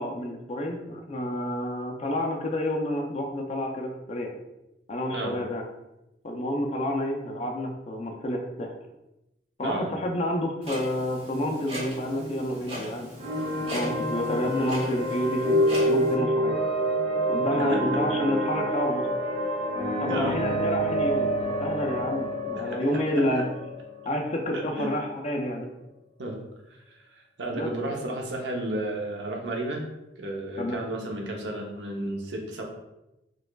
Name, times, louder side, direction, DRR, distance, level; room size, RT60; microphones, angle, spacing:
voice 1, 0.0-4.3 4.9-5.6 6.2-8.7 9.6-13.1 13.7-16.6 17.3-19.1 20.0-21.3 21.6-23.5 24.0-25.7 27.5-27.7 30.6-30.8, left 1 dB, 35° left, 1 dB, 0.4 m, -29 dB
Clock, 10.6-16.1, equal, 35° right, 0.9 m, -38 dB
sound 1, 13.2-24.8, equal, 60° right, 0.9 m, -28 dB
voice 2, 17.5-17.8 18.1-18.2 20.1-20.4 22.5-23.2 24.5-25.0 26.2-26.4 26.9-29.8 30.2-32.6, right 1 dB, 85° right, 1 dB, 0.7 m, -33 dB
4.8 x 2.3 x 2.2 m, 0.93 s
head